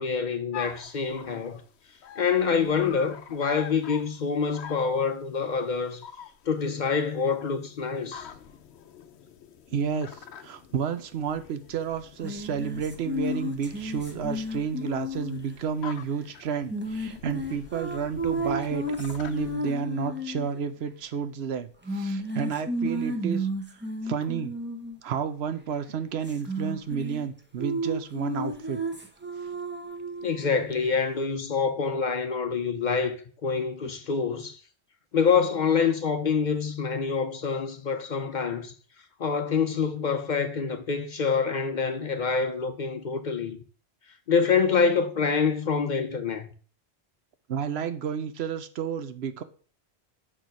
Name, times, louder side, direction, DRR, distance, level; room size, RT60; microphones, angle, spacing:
voice 1, 0.0-1.6 2.2-6.0 6.4-8.3 30.2-34.6 35.1-38.7 39.2-43.6 44.3-46.5, left 5 dB, 50° left, 0.7 m, -26 dB
sound 1, 0.5-19.6, left 8 dB, 85° left, 0.9 m, -46 dB
voice 2, 9.7-23.8 24.0-24.5 25.0-28.8 47.5-49.4, right 7 dB, 75° right, 0.9 m, -31 dB
sound 2, 12.2-15.5 16.7-20.5 21.9-25.0 26.2-27.3 27.6-30.5, equal, 10° right, 0.9 m, -32 dB
6.2 x 4.5 x 5.2 m
omnidirectional pair, 1.1 m